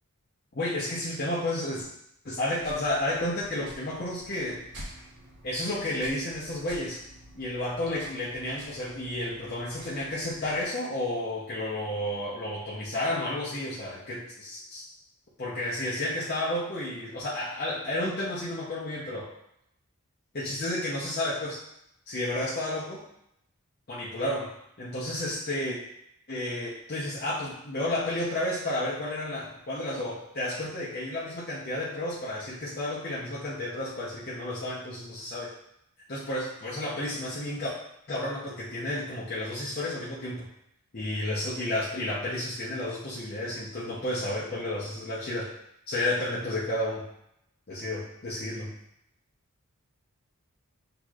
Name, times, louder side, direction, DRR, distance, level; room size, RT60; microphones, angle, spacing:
voice 1, 0.5-1.9 2.2-4.6 5.4-7.0 7.3-14.8 15.4-19.3 20.3-21.6 22.1-23.0 23.9-25.8 26.3-35.5 36.1-37.7 38.1-40.5 40.9-45.5 45.9-47.1 47.7-48.7, left 1 dB, 45° left, -8 dB, 0.8 m, -31 dB
sound 1, 2.6-10.6, right 1 dB, 50° right, 1.2 m, -48 dB
6.2 x 2.9 x 2.4 m, 0.77 s
head